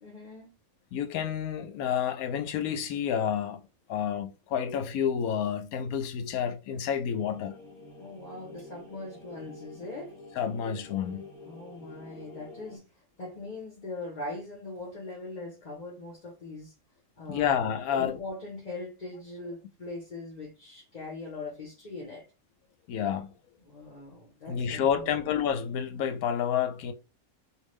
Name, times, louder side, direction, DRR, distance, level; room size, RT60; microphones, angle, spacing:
voice 1, 0.0-0.6 8.0-10.1 11.4-16.7 17.2-17.6 17.9-22.3 23.6-25.3, left 2 dB, 35° left, 1.0 m, -41 dB
voice 2, 0.9-3.6 3.9-7.5 10.4-11.3 17.3-18.2 22.9-23.3 24.5-26.9, left 8 dB, 80° left, 1.0 m, -29 dB
sound 1, 7.1-12.8, left 3 dB, ahead, 0.9 m, -48 dB
3.5 x 2.5 x 3.1 m
omnidirectional pair, 1.5 m